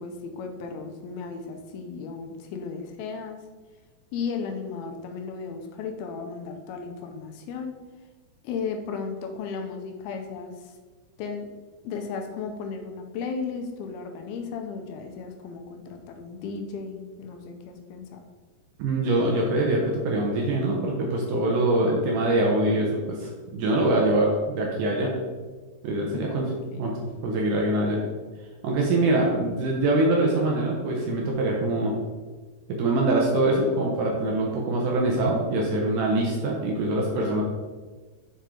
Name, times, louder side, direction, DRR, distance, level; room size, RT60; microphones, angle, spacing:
voice 1, 0.0-3.4 4.1-7.8 8.4-10.8 11.2-11.5 11.8-18.2 26.1-26.4 26.7-26.9, left 5 dB, 80° left, 5 dB, 2.5 m, -35 dB
voice 2, 18.8-25.1 25.8-26.5 26.8-27.0 27.2-28.0 28.6-31.9 32.7-37.4, right 2 dB, 70° right, -1 dB, 2.1 m, -24 dB
6.8 x 5.3 x 3.7 m, 1.4 s
omnidirectional pair, 4.5 m